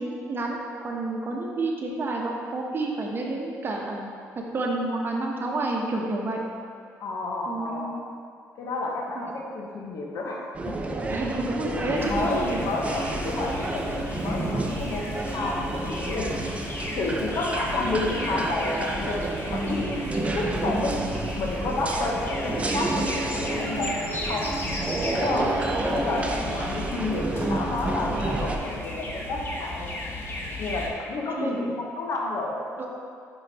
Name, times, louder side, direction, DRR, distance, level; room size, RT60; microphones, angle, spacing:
voice 1, 0.0-4.1 4.3-6.4 7.5-8.0 9.2-9.3 11.1-12.6 25.4-25.5 25.8-26.4 31.4-31.7 32.8-32.9, right 2 dB, 40° right, 0 dB, 0.9 m, -30 dB
voice 2, 7.0-8.0 8.6-10.7 11.6-16.4 17.0-20.0 20.3-21.0 21.4-24.5 24.9-25.5 25.9-29.9 30.6-32.6, left 2 dB, 65° left, -1 dB, 1.0 m, -30 dB
sound 1, 10.5-28.6, right 2 dB, 20° right, 0.5 m, -30 dB
sound 2, 11.9-30.9, left 2 dB, 40° left, 1.0 m, -36 dB
5.1 x 4.6 x 4.1 m, 2.3 s
cardioid pair, 85°, 6 cm